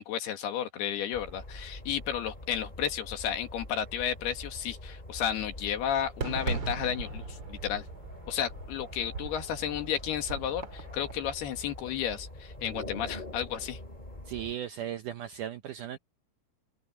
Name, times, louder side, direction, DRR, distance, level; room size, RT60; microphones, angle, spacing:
voice 1, 0.0-7.9 8.3-13.8, left 9 dB, 75° left, 3.9 m, -32 dB
sound 1, 1.1-14.5, left 1 dB, 10° left, 4.1 m, -45 dB
Fireworks, 6.2-11.3, right 4 dB, 35° right, 2.2 m, -39 dB
voice 2, 14.3-16.0, right 11 dB, 80° right, 1.9 m, -36 dB
open air
omnidirectional pair, 4.6 m